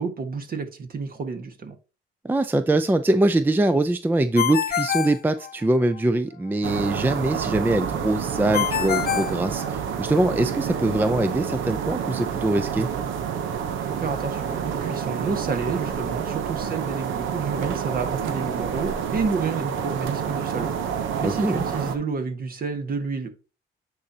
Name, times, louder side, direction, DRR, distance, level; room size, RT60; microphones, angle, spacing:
voice 1, 0.0-1.7 13.8-23.3, right 4 dB, 45° right, 1.5 m, -30 dB
voice 2, 2.2-12.9 21.2-21.6, right 2 dB, 10° right, 0.4 m, -23 dB
Ringtone, 4.4-6.0 8.5-10.2, left 9 dB, 50° left, 0.7 m, -26 dB
sound 1, 6.6-22.0, right 7 dB, 80° right, 0.8 m, -28 dB
9.3 x 4.1 x 2.8 m
cardioid pair, 90°, 20 cm